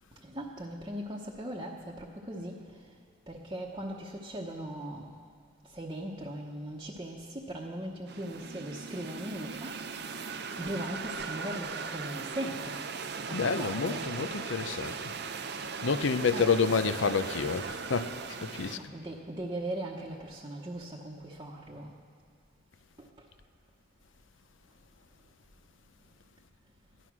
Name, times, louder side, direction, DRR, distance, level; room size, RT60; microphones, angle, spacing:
voice 1, 0.2-2.8 3.3-5.1 5.7-9.8 10.1-10.2 10.6-12.8 13.3-14.1 16.3-16.5 18.7-21.9 23.0-23.3, right 1 dB, 20° right, -4 dB, 1.0 m, -39 dB
sound 1, 8.1-18.8, right 5 dB, 55° right, 0.6 m, -38 dB
voice 2, 13.3-15.0 15.8-18.1 18.4-18.8, left 5 dB, 75° left, 11 dB, 0.6 m, -28 dB
15.0 x 11.5 x 6.1 m, 2.2 s
head